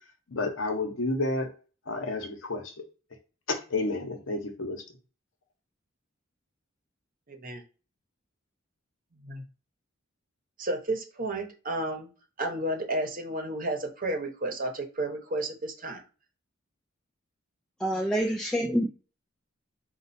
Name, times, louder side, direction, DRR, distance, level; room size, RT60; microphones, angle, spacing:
voice 1, 0.3-1.5 1.9-2.8 3.5-4.8, left 2 dB, 70° left, 1.0 m, -30 dB
voice 2, 7.3-7.6 9.2-9.4 10.6-12.1 12.4-16.0, right 1 dB, 45° right, 1.0 m, -32 dB
voice 3, 17.8-18.9, equal, 5° left, 0.4 m, -26 dB
4.5 x 2.4 x 4.1 m
head